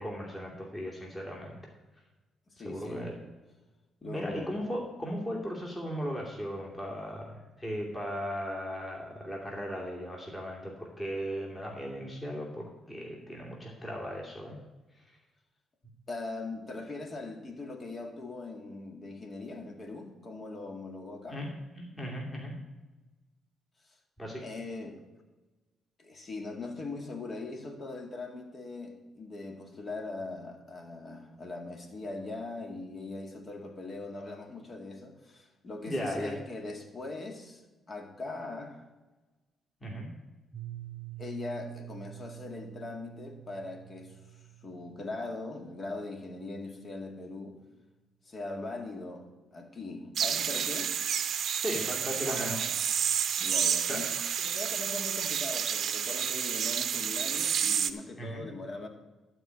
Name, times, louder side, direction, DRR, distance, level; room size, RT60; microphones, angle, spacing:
voice 1, 0.0-1.6 2.6-3.1 4.0-14.6 21.3-22.5 24.2-24.4 35.8-36.4 39.8-40.1 51.6-52.5 53.9-54.1 54.4-54.5 58.2-58.4, equal, 20° left, -2 dB, 2.7 m, -37 dB
voice 2, 2.5-3.2 4.0-4.6 16.1-21.4 24.4-25.0 26.0-38.8 41.2-47.5 48.2-49.3 49.5-51.0 52.3-52.7 53.4-54.1 54.4-58.9, left 2 dB, 40° left, 3 dB, 2.1 m, -40 dB
Piano, 40.5-46.2, right 16 dB, 25° right, 1.3 m, -47 dB
sound 1, 50.2-57.9, right 8 dB, 60° right, 0.7 m, -30 dB
12.5 x 4.7 x 8.4 m, 1.2 s
cardioid pair, 90°, 0 cm